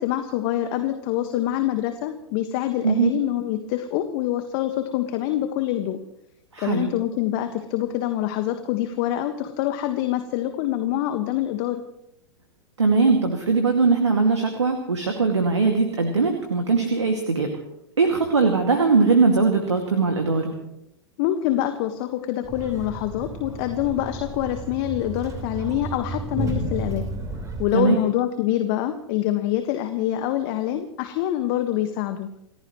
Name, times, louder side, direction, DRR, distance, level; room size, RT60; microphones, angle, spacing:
voice 1, 0.0-6.0 6.6-11.8 21.2-27.0 27.6-32.3, left 12 dB, 50° left, 7 dB, 1.6 m, -25 dB
voice 2, 6.5-6.9 12.8-17.5 18.0-20.5 27.7-28.0, right 4 dB, 85° right, 4 dB, 2.3 m, -20 dB
sound 1, 22.4-27.7, right 2 dB, 25° right, 4.7 m, -32 dB
29.0 x 15.5 x 3.2 m, 0.81 s
figure-of-eight pair, 95°, 14 cm